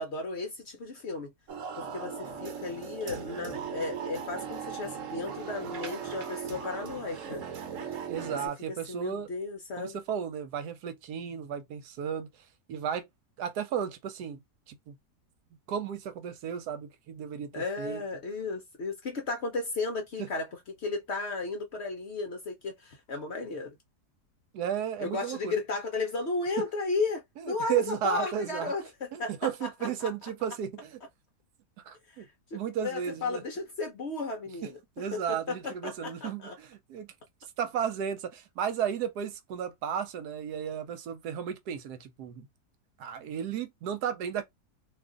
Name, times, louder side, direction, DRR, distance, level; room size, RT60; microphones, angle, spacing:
voice 1, 0.0-1.3 1.8-7.4 8.3-8.4 8.7-10.0 17.5-20.5 20.8-23.7 25.0-29.7 30.0-30.1 32.1-34.8 35.1-36.6, left 3 dB, 60° left, 0.7 m, -34 dB
sound 1, 1.5-8.5, right 7 dB, 55° right, 1.1 m, -38 dB
voice 2, 8.1-9.3 9.8-12.3 12.7-13.1 13.4-14.4 14.7-15.0 15.7-18.0 20.2-20.3 24.5-25.5 27.4-28.7 29.1-31.0 31.9-32.2 32.5-33.4 35.0-37.1 37.6-42.5 43.0-44.4, right 8 dB, 80° right, 1.2 m, -34 dB
2.7 x 2.4 x 3.7 m
omnidirectional pair, 1.7 m